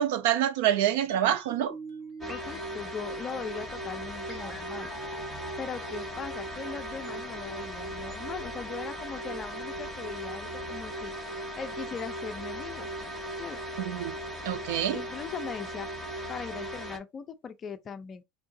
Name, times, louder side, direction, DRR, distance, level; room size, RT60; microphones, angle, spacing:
voice 1, 0.0-1.8 13.8-14.1 14.4-15.0, right 11 dB, 75° right, 0.5 m, -26 dB
sound 1, 1.1-7.1 7.4-7.5, right 1 dB, 35° right, 1.2 m, -46 dB
sound 2, 2.2-17.0, right 1 dB, 10° right, 0.9 m, -38 dB
voice 2, 2.3-4.9 5.6-12.9 13.4-13.6 14.9-18.2, left 6 dB, 25° left, 0.5 m, -40 dB
4.5 x 2.4 x 2.7 m
supercardioid pair, 155°, 0 cm